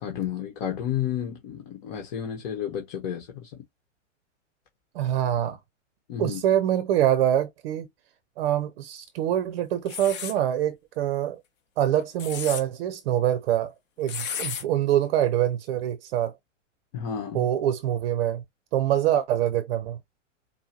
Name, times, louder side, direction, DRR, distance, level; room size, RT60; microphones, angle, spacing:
voice 1, 0.0-3.5 6.1-6.4 16.9-17.5, left 9 dB, 45° left, 1.3 m, -31 dB
voice 2, 4.9-5.6 6.2-7.9 8.4-11.4 11.8-16.3 17.3-18.4 18.7-20.0, right 11 dB, 50° right, 0.7 m, -25 dB
sound 1, 9.9-10.4 12.0-12.6 14.1-14.6, left 8 dB, 30° left, 0.9 m, -33 dB
5.3 x 2.2 x 2.9 m
hypercardioid pair, 105°, 38 cm